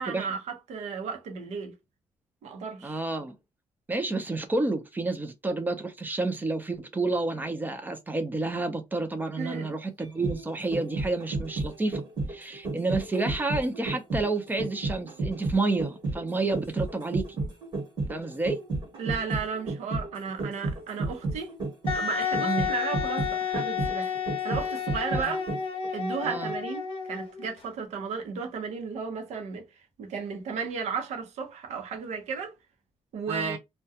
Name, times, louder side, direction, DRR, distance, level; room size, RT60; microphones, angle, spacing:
voice 1, 0.0-1.7 2.4-3.0 9.4-9.8 19.0-21.6 21.9-25.4 25.9-29.7 30.0-32.5 33.1-33.6, right 5 dB, 90° right, 0.7 m, -34 dB
voice 2, 2.8-3.4 3.9-12.0 12.3-17.3 18.1-18.6 22.4-22.7 25.1-25.3 26.2-26.5 33.3-33.6, right 3 dB, 15° right, 0.4 m, -30 dB
sound 1, 10.0-25.9 26.2-26.3, right 3 dB, 40° right, 1.1 m, -32 dB
Wind instrument woodwind instrument, 21.9-27.5, left 7 dB, 50° left, 0.6 m, -31 dB
2.3 x 2.2 x 2.7 m
cardioid pair, 155°, 11 cm